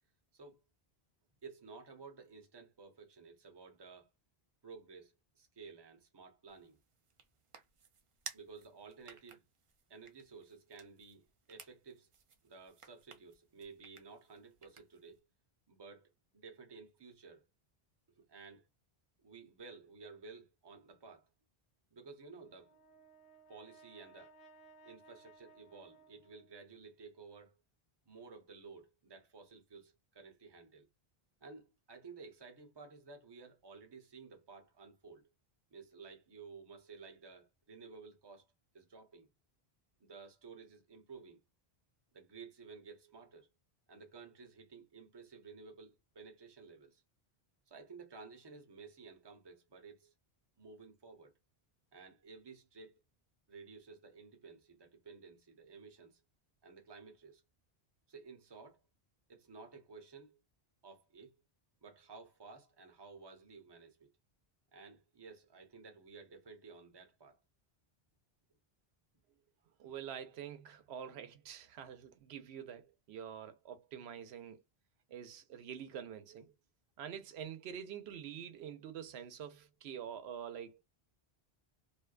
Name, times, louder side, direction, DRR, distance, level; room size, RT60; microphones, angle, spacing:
voice 1, 0.3-0.6 1.4-4.1 4.6-6.8 8.3-9.4 9.9-12.1 12.4-15.2 15.7-17.5 18.1-18.7 19.2-21.3 21.9-22.8 23.5-24.4 24.8-27.6 28.1-30.9 31.4-35.3 35.7-38.5 38.7-39.3 40.0-41.4 42.1-43.5 43.9-47.0 47.7-50.1 50.6-51.3 51.9-53.0 53.5-56.2 56.6-57.4 58.1-58.8 59.3-60.4 60.8-61.4 61.8-64.1 64.7-67.4, right 4 dB, 30° right, 0.7 m, -54 dB
sound 1, 6.5-15.2, right 6 dB, 55° right, 0.3 m, -56 dB
Brass instrument, 22.3-26.8, right 3 dB, 65° left, 0.9 m, -61 dB
voice 2, 69.8-74.6 75.1-76.5 77.0-80.8, right 8 dB, 90° right, 0.8 m, -46 dB
2.4 x 2.2 x 2.3 m
omnidirectional pair, 1.0 m